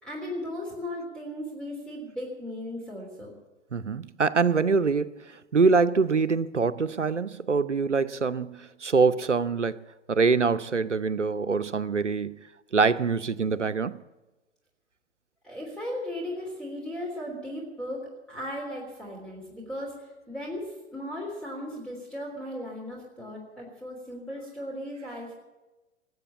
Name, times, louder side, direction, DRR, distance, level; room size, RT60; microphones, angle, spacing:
voice 1, 0.0-3.3 15.4-19.9 20.3-25.3, left 1 dB, ahead, 3.5 m, -36 dB
voice 2, 3.7-9.8 10.1-12.4 12.7-14.0, right 4 dB, 85° right, 0.7 m, -24 dB
20.5 x 8.0 x 8.6 m
figure-of-eight pair, 105°, 35 cm